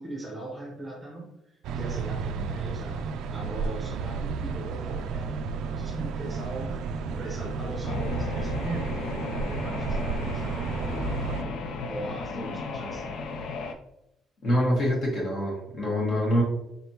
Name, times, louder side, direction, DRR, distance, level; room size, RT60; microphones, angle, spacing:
voice 1, 0.0-13.2, right 2 dB, 15° right, -2 dB, 0.8 m, -40 dB
sound 1, 1.6-11.4, right 4 dB, 65° right, 0.3 m, -32 dB
sound 2, 7.8-13.7, left 4 dB, 60° left, 0.4 m, -35 dB
voice 2, 14.4-16.4, equal, 40° left, -3 dB, 1.3 m, -25 dB
4.1 x 3.4 x 2.8 m, 0.84 s
cardioid pair, 175°, 0 cm